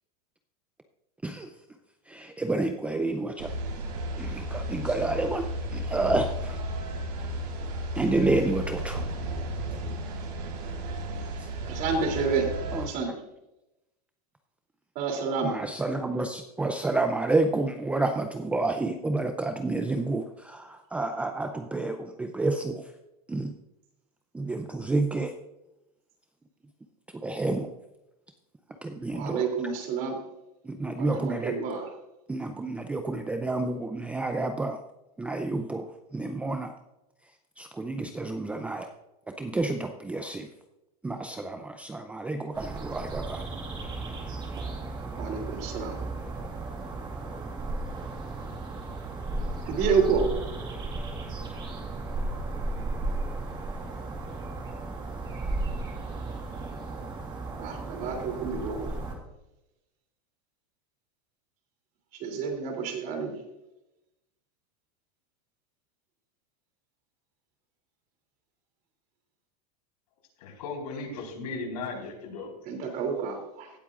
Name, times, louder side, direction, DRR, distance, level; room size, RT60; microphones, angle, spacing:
voice 1, 2.1-3.5 4.2-5.5 5.7-6.6 8.0-9.0 12.7-12.9 15.4-22.9 23.3-23.5 24.3-25.3 27.2-27.7 28.8-29.5 30.6-31.6 32.3-34.8 35.2-36.7 37.6-38.9 39.4-40.5 41.0-43.4, right 2 dB, 5° right, 6 dB, 0.5 m, -29 dB
sound 1, 3.4-12.9, right 1 dB, 90° right, 4.0 m, -34 dB
voice 2, 11.6-12.5 12.8-13.1 14.9-15.6 29.1-30.2 31.0-31.9 45.2-46.0 49.6-50.3 57.6-58.9 62.2-63.4 72.7-73.7, right 5 dB, 45° right, 3 dB, 3.1 m, -29 dB
sound 2, 42.5-59.1, right 2 dB, 25° right, 2.4 m, -35 dB
voice 3, 70.4-72.5, left 3 dB, 75° left, 2 dB, 4.4 m, -36 dB
17.0 x 8.1 x 2.5 m, 0.92 s
supercardioid pair, 145°, 20 cm